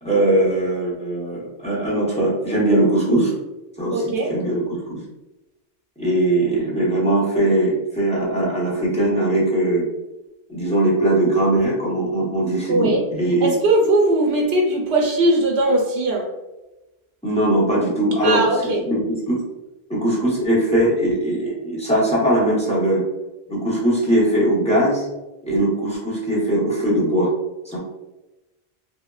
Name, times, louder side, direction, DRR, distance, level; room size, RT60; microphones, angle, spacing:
voice 1, 0.0-3.3 3.8-5.0 6.0-9.9 10.5-13.5 17.2-19.4 19.9-23.0 23.5-25.1 25.5-27.3 27.7-27.8, right 1 dB, 5° left, -7 dB, 0.8 m, -20 dB
voice 2, 3.9-4.3 12.7-13.0 13.4-16.3 18.2-18.8, right 1 dB, 80° right, -1 dB, 0.8 m, -19 dB
3.5 x 2.2 x 2.3 m, 1.0 s
omnidirectional pair, 1.1 m